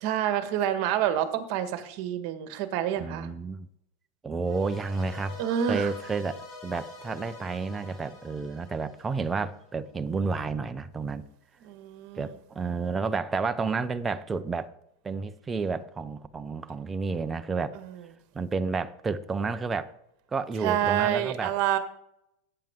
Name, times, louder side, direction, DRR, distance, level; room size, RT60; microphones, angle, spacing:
voice 1, 0.0-3.3 5.4-5.9 11.6-12.3 20.6-21.8, right 10 dB, 45° right, 1.5 m, -27 dB
voice 2, 3.0-3.7 4.2-6.4 6.6-11.3 12.2-14.7 15.0-17.8 18.3-19.9 20.3-21.5, right 4 dB, 10° right, 0.6 m, -31 dB
sound 1, 4.4-9.7, left 2 dB, 30° left, 4.1 m, -46 dB
16.5 x 8.9 x 3.7 m
supercardioid pair, 160°, 0 cm